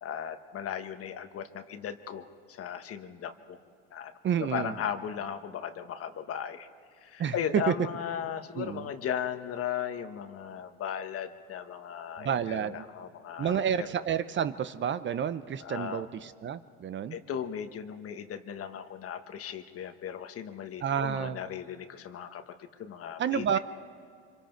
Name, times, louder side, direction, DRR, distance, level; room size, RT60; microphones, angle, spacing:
voice 1, 0.0-3.6 3.9-4.1 4.4-6.7 7.0-13.9 15.6-16.0 17.1-23.6, left 8 dB, 50° left, 9 dB, 1.3 m, -37 dB
voice 2, 4.2-4.7 7.2-7.7 8.6-8.9 12.2-12.8 13.4-17.2 20.8-21.4 23.2-23.6, right 8 dB, 40° right, 13 dB, 0.7 m, -30 dB
26.0 x 25.0 x 4.5 m, 2.3 s
supercardioid pair, 95°, 29 cm